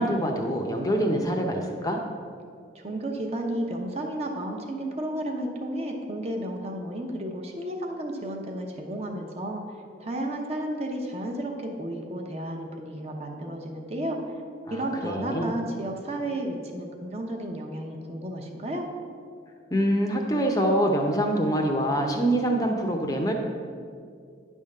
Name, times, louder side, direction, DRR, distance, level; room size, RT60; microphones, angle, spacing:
voice 1, 0.0-2.0 14.7-15.5 19.7-23.3, right 1 dB, 20° left, 2 dB, 0.6 m, -25 dB
voice 2, 2.7-9.6 10.0-14.2 14.7-18.9, right 1 dB, 35° right, 1 dB, 0.8 m, -32 dB
9.6 x 3.6 x 6.5 m, 2.2 s
head